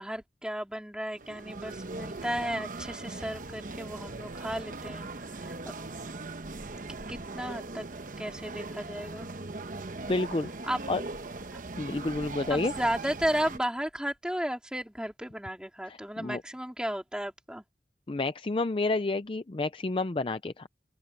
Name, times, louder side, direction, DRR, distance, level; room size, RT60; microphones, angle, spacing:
voice 1, 0.0-5.8 6.9-7.9 8.2-9.3 10.7-10.8 11.5-11.6 12.5-17.6, equal, 5° right, 3.8 m, -34 dB
sound 1, 1.1-13.6, right 3 dB, 45° right, 1.0 m, -40 dB
voice 2, 10.1-10.5 10.9-11.0 11.8-12.7 15.9-16.4 18.1-20.7, left 2 dB, 30° left, 0.5 m, -30 dB
open air
head